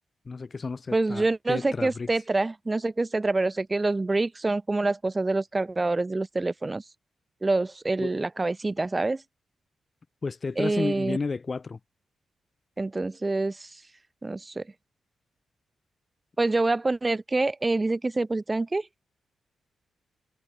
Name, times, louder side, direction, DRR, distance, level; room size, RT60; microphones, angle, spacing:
voice 1, 0.3-2.1 8.0-8.2 10.2-11.8, left 4 dB, 45° left, 0.3 m, -32 dB
voice 2, 0.9-6.8 7.4-9.2 10.6-11.2 12.8-13.7 14.2-14.6 16.4-18.9, right 2 dB, 30° right, 0.4 m, -26 dB
supercardioid pair, 45°, 0 cm